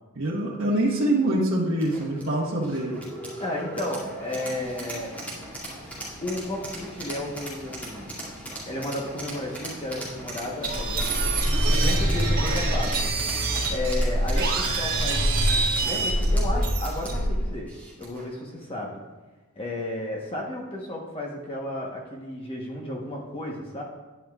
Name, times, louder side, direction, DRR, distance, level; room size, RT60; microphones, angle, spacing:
voice 1, 0.1-3.0, right 1 dB, 60° right, -6 dB, 1.4 m, -25 dB
sound 1, 1.8-18.3, right 1 dB, 5° left, 2.4 m, -39 dB
voice 2, 3.4-5.1 6.2-8.1 8.7-11.3 11.6-13.1 13.7-17.7 18.0-18.9 19.5-23.8, left 1 dB, 25° left, -2 dB, 1.1 m, -33 dB
sound 2, 10.6-17.4, right 1 dB, 45° right, 1.9 m, -24 dB
10.5 x 10.0 x 2.4 m, 1.2 s
head